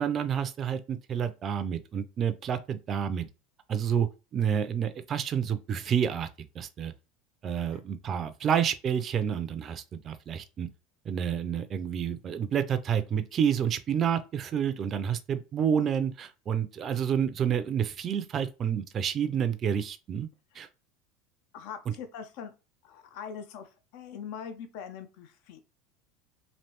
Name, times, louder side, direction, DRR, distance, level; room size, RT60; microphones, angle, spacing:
voice 1, 0.0-3.3 3.7-6.3 6.5-6.9 7.4-10.7 11.1-20.3 20.5-20.7 21.9-22.0, right 8 dB, 40° right, 0.4 m, -29 dB
voice 2, 21.5-22.5 22.8-25.6, left 7 dB, 65° left, 0.5 m, -42 dB
3.2 x 2.6 x 2.9 m
hypercardioid pair, 95°, 0 cm